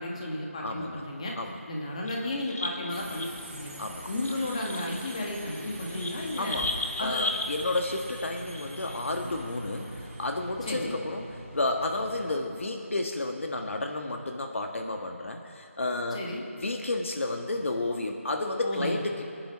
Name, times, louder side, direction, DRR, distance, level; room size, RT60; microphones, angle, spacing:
voice 1, 0.0-1.3 1.7-3.7 4.1-6.6 7.0-7.2 10.6-11.0 16.1-16.4 18.6-19.0, left 1 dB, 25° left, -1 dB, 2.0 m, -33 dB
voice 2, 0.6-1.0 1.4-1.6 3.8-4.0 6.4-6.7 7.0-11.3 11.5-16.2 16.6-19.2, left 2 dB, 60° left, 3 dB, 1.5 m, -31 dB
sound 1, 1.9-3.5 4.0-9.0, left 2 dB, 80° left, 1.7 m, -36 dB
Subway metro underground, 2.9-12.3, right 1 dB, 5° right, 2.0 m, -43 dB
22.5 x 10.5 x 6.0 m, 2.6 s
figure-of-eight pair, 175°, 8 cm